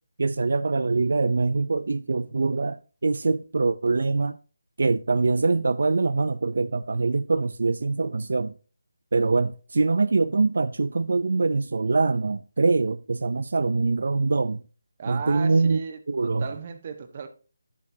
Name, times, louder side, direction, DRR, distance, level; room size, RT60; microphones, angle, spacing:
voice 1, 0.2-4.4 4.8-8.5 9.1-14.6 15.1-15.8 16.1-16.5, right 3 dB, 65° right, 0.5 m, -24 dB
voice 2, 15.0-17.3, right 6 dB, 35° right, 1.2 m, -36 dB
10.5 x 8.3 x 2.7 m
figure-of-eight pair, 165°, 0 cm